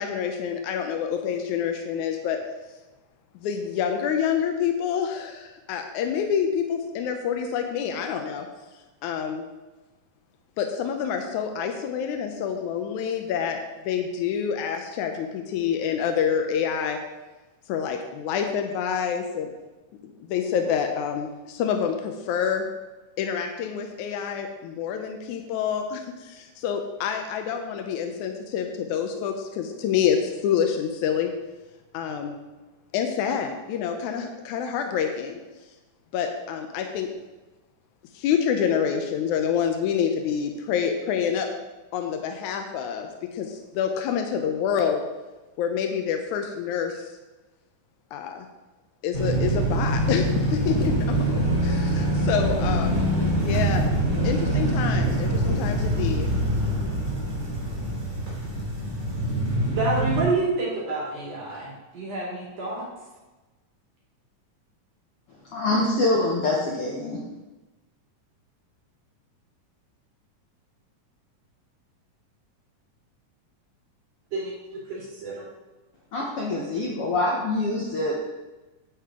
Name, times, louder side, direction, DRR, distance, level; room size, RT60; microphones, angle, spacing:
voice 1, 0.0-2.4 3.4-8.5 9.0-9.4 10.6-17.0 17.7-19.5 20.3-22.7 23.2-31.3 31.9-32.4 32.9-35.4 36.1-37.1 38.1-41.5 41.9-45.0 45.6-47.1 48.1-48.5 49.0-53.0 53.4-53.9 54.2-56.3, left 7 dB, 80° left, 4 dB, 2.1 m, -27 dB
sound 1, 49.1-60.2, right 1 dB, 30° right, 3.1 m, -24 dB
voice 2, 59.7-62.9 74.3-75.4, right 2 dB, 55° right, -6 dB, 3.8 m, -29 dB
voice 3, 65.5-67.2 76.1-78.1, left 2 dB, 60° left, -2 dB, 1.6 m, -25 dB
10.0 x 7.5 x 3.7 m, 1.1 s
omnidirectional pair, 3.6 m